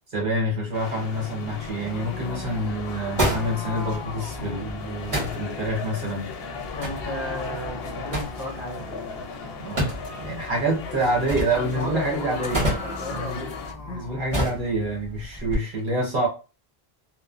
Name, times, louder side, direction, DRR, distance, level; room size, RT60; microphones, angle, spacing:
voice 1, 0.1-6.3 9.6-12.7 13.1-13.5 13.8-16.3, right 1 dB, 50° right, 1.0 m, -27 dB
sound 1, 0.7-13.7, left 5 dB, 70° left, 0.8 m, -37 dB
sound 2, 1.4-5.2 6.2-10.4 11.8-14.3, left 3 dB, 40° left, 0.4 m, -41 dB
sound 3, 1.6-15.5, equal, 35° right, 1.3 m, -33 dB
voice 2, 6.7-9.3 11.5-12.5 12.8-13.6 13.9-14.0, equal, 15° left, 0.9 m, -34 dB
3.0 x 2.0 x 2.4 m
omnidirectional pair, 1.1 m